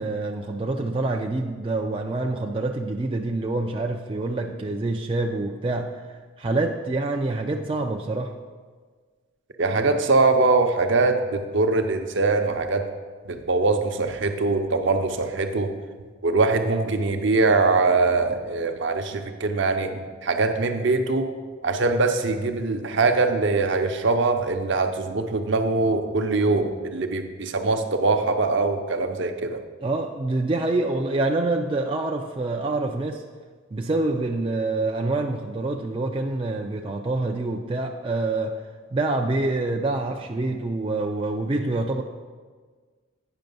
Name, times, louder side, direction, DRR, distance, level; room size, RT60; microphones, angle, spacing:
voice 1, 0.0-8.4 29.8-33.2 33.7-38.6 38.9-42.0, right 2 dB, 25° right, 2 dB, 0.3 m, -26 dB
voice 2, 9.6-12.9 13.3-15.7 16.2-21.3 21.6-29.6, right 3 dB, 60° right, 6 dB, 0.7 m, -22 dB
9.0 x 5.9 x 5.3 m, 1.5 s
head